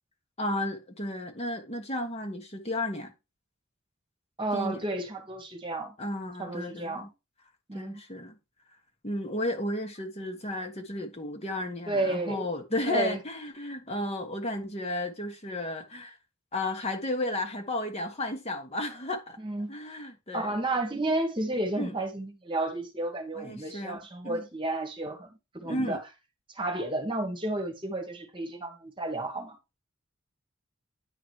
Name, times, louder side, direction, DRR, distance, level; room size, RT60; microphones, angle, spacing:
voice 1, 0.4-3.1 4.5-4.8 6.0-7.1 7.7-8.4 9.0-16.2 16.5-19.4 19.7-20.6 21.8-21.9 23.3-24.0 24.2-24.4 25.6-26.0, left 1 dB, 30° left, 1.4 m, -33 dB
voice 2, 4.4-5.9 6.4-7.1 7.7-8.0 11.9-12.5 12.9-13.2 19.4-19.8 20.3-26.0 26.5-29.6, right 2 dB, 25° right, 1.5 m, -32 dB
10.0 x 4.0 x 4.7 m
head